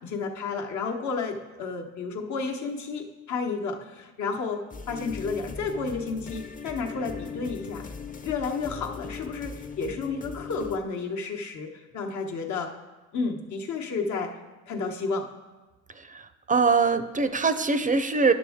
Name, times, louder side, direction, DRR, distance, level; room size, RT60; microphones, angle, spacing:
voice 1, 0.0-7.8 8.2-12.7 13.1-14.3 14.7-15.3, left 4 dB, 70° left, 2 dB, 1.0 m, -31 dB
sound 1, 4.7-10.8, left 5 dB, 30° left, 0.6 m, -39 dB
voice 2, 15.9-18.3, right 4 dB, 25° right, 10 dB, 0.5 m, -23 dB
10.0 x 6.2 x 3.5 m, 1.2 s
cardioid pair, 90°, 30 cm